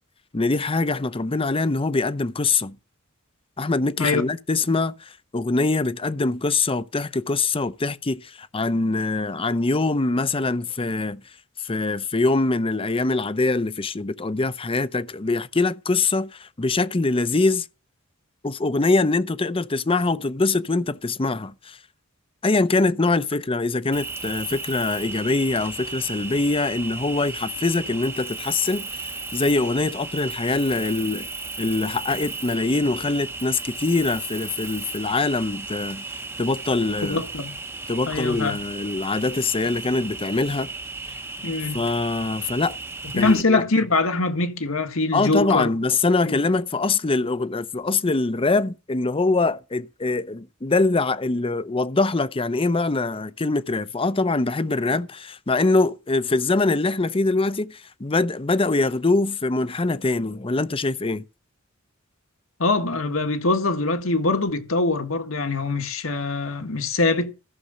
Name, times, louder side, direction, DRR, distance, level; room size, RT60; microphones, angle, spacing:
voice 1, 0.3-2.8 3.6-11.2 11.6-17.7 18.4-21.8 22.4-31.3 31.6-36.0 36.4-37.2 37.9-40.7 41.1-41.2 41.7-42.8 43.2-43.6 45.1-61.2, left 3 dB, 25° left, 0.7 m, -23 dB
Cricket, 23.9-43.4, right 3 dB, 10° right, 0.8 m, -35 dB
voice 2, 37.0-37.5 38.0-38.6 41.4-41.8 43.1-45.7 46.2-46.4 62.6-67.3, left 3 dB, 75° left, 1.8 m, -23 dB
14.5 x 6.9 x 5.2 m
head